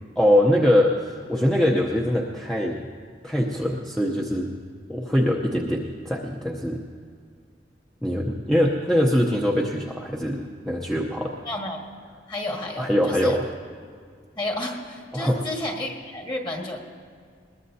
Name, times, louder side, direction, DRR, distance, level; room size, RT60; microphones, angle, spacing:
voice 1, 0.2-2.9 3.2-4.5 4.9-6.8 8.0-11.3 12.8-13.4 15.1-15.4, equal, 5° left, -3 dB, 0.8 m, -23 dB
voice 2, 11.5-11.8 12.3-12.9 13.2-13.4 14.4-16.8, left 1 dB, 25° left, 0 dB, 1.8 m, -31 dB
21.0 x 20.5 x 2.8 m, 2.2 s
head